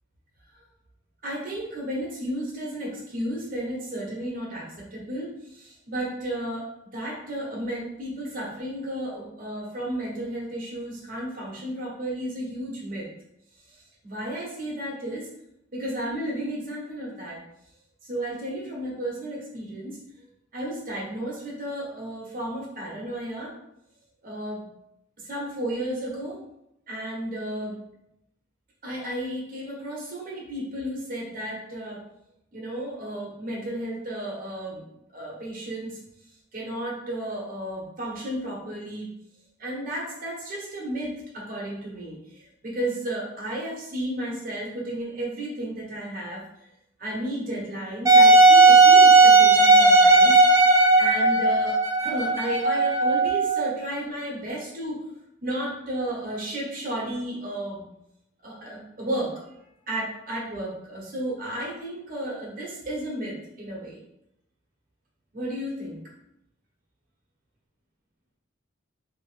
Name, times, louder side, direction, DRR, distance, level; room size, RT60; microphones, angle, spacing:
voice 1, 1.2-6.7 6.9-13.1 14.0-15.3 15.7-17.4 18.0-20.0 20.5-23.5 24.2-24.6 25.2-26.4 26.9-27.8 28.8-32.0 32.5-34.8 35.1-36.0 36.5-39.1 39.6-46.4 47.0-50.4 51.0-51.7 52.0-55.0 55.4-57.8 58.4-59.4 59.9-64.0 65.3-66.0, right 1 dB, 45° right, -3 dB, 0.9 m, -33 dB
Wind instrument woodwind instrument, 48.0-53.7, right 3 dB, 15° right, 0.4 m, -15 dB
2.8 x 2.4 x 3.2 m, 0.81 s
head